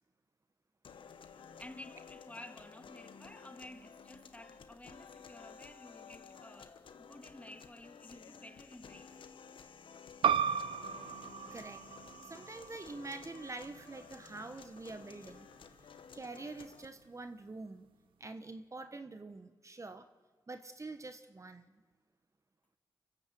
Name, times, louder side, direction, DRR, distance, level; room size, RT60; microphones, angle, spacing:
sound 1, 0.8-16.8, left 6 dB, 75° left, 1.2 m, -54 dB
voice 1, 1.3-9.2, left 1 dB, 15° left, 2.1 m, -53 dB
sound 2, 10.2-15.4, right 7 dB, 80° right, 0.6 m, -36 dB
voice 2, 11.5-11.9 12.2-15.5 16.1-17.9 18.2-20.1 20.5-21.7, right 3 dB, 35° right, 1.3 m, -46 dB
25.0 x 14.5 x 7.8 m
supercardioid pair, 45°, 9 cm